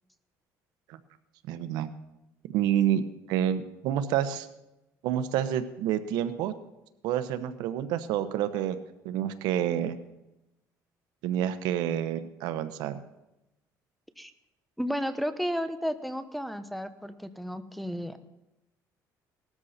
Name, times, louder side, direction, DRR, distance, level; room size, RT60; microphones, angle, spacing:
voice 1, 1.5-1.9 2.5-3.0 3.3-4.5 5.0-6.5 7.0-8.8 9.0-10.0 11.2-13.0, right 10 dB, 90° right, 11 dB, 1.1 m, -28 dB
voice 2, 14.8-18.2, equal, ahead, 8 dB, 1.0 m, -33 dB
18.5 x 13.0 x 4.3 m, 0.92 s
cardioid pair, 120°, 7 cm